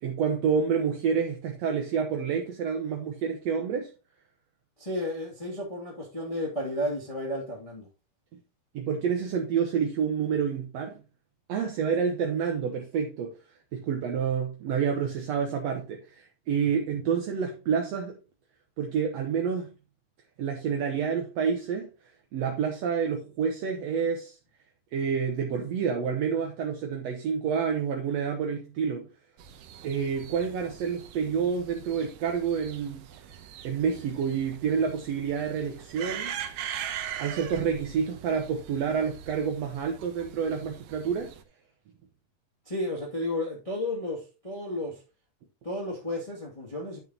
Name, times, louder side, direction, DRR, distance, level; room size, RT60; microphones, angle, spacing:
voice 1, 0.0-3.9 8.7-11.0 11.5-13.3 13.7-18.2 18.8-19.7 20.4-21.9 22.3-24.4 24.9-29.1 29.8-33.0 33.6-36.4 37.2-41.3, right 6 dB, 65° right, 1.8 m, -28 dB
voice 2, 4.8-7.9 16.7-16.8 42.6-45.0 45.6-47.0, left 1 dB, 10° left, 1.8 m, -32 dB
sound 1, 29.4-41.4, right 9 dB, 80° right, 2.5 m, -41 dB
10.5 x 6.4 x 2.9 m
omnidirectional pair, 3.9 m